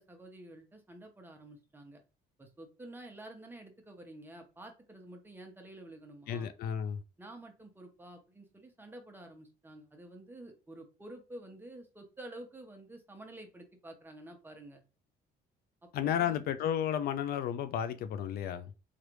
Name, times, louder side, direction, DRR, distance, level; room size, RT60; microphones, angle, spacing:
voice 1, 0.0-2.0 2.4-6.5 7.2-14.8 15.8-16.4, right 1 dB, 10° right, 0.8 m, -50 dB
voice 2, 6.3-7.0 15.9-18.7, left 9 dB, 65° left, 0.4 m, -32 dB
3.2 x 2.5 x 3.0 m
cardioid pair, 110°, 17 cm